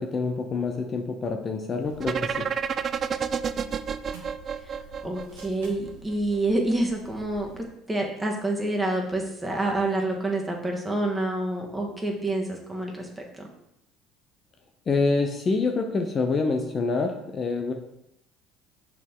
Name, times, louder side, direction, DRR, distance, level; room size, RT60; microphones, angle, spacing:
voice 1, 0.0-2.5 14.9-17.7, left 3 dB, 40° left, 5 dB, 0.7 m, -26 dB
sound 1, 1.8-7.7, right 1 dB, 85° right, 1.2 m, -49 dB
sound 2, 2.0-5.9, right 7 dB, 45° right, 0.3 m, -29 dB
voice 2, 5.0-13.5, right 2 dB, 15° right, 0 dB, 1.6 m, -28 dB
6.1 x 4.6 x 3.7 m, 0.80 s
hypercardioid pair, 70°, 0 cm